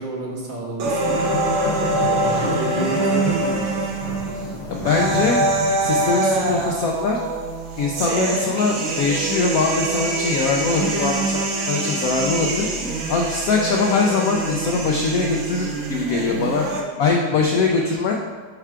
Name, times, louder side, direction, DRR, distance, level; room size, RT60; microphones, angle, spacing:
voice 1, 0.0-1.3 1.8-3.9, right 3 dB, 70° right, -3 dB, 1.8 m, -29 dB
sound 1, 0.8-16.8, right 2 dB, 85° right, 1.6 m, -24 dB
sound 2, 1.1-6.8, left 4 dB, 70° left, 1.1 m, -31 dB
voice 2, 4.7-5.4 5.8-7.2 7.8-12.7 13.1-16.7 17.0-18.1, left 4 dB, 90° left, 0 dB, 0.7 m, -22 dB
9.0 x 4.5 x 2.4 m, 1.5 s
omnidirectional pair, 2.1 m